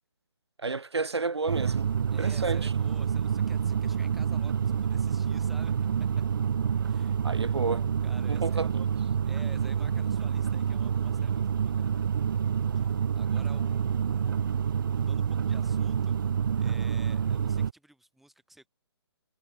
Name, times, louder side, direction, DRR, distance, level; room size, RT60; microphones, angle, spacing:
voice 1, 0.6-1.9 2.2-2.7 7.2-7.9 8.3-8.8, right 4 dB, 70° right, 2.9 m, -31 dB
sound 1, 1.5-17.7, right 7 dB, 50° right, 0.5 m, -28 dB
voice 2, 2.1-5.7 6.8-7.2 8.0-8.7 9.2-11.9 12.7-14.4 14.9-18.7, right 1 dB, ahead, 4.9 m, -53 dB
figure-of-eight pair, 135°, 14 cm